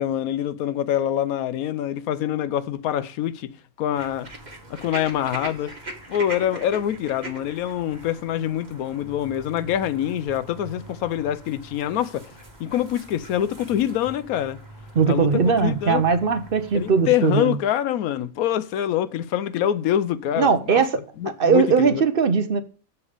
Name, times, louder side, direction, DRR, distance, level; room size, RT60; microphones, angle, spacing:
voice 1, 0.0-3.5 3.8-4.3 4.7-5.7 6.1-12.3 12.6-14.6 15.1-16.0 16.7-20.8 21.2-22.0, left 11 dB, 80° left, 1.0 m, -25 dB
sound 1, 3.9-17.0, right 2 dB, 30° right, 1.4 m, -41 dB
voice 2, 15.0-17.6 20.4-21.0 21.4-22.6, right 5 dB, 50° right, 0.7 m, -19 dB
7.1 x 6.9 x 4.9 m
omnidirectional pair, 1.5 m